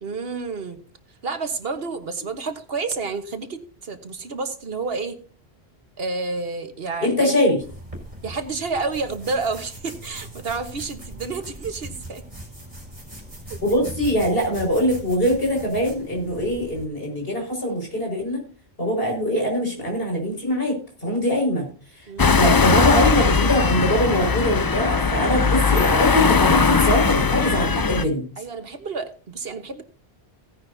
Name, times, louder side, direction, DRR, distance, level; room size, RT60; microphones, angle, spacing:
voice 1, 0.0-0.8 1.2-5.2 6.0-7.4 8.2-12.2 13.7-13.9 22.1-22.4 28.4-29.8, right 4 dB, 65° right, 9 dB, 1.5 m, -30 dB
voice 2, 7.0-7.6 13.6-18.4 18.8-20.8 21.0-21.7 22.0-28.2, equal, 65° left, 1 dB, 5.6 m, -22 dB
sound 1, 7.6-16.9, right 1 dB, 30° right, 4.6 m, -40 dB
sound 2, 22.2-28.0, left 5 dB, 30° left, 0.4 m, -19 dB
16.5 x 10.5 x 2.7 m, 0.40 s
omnidirectional pair, 1.1 m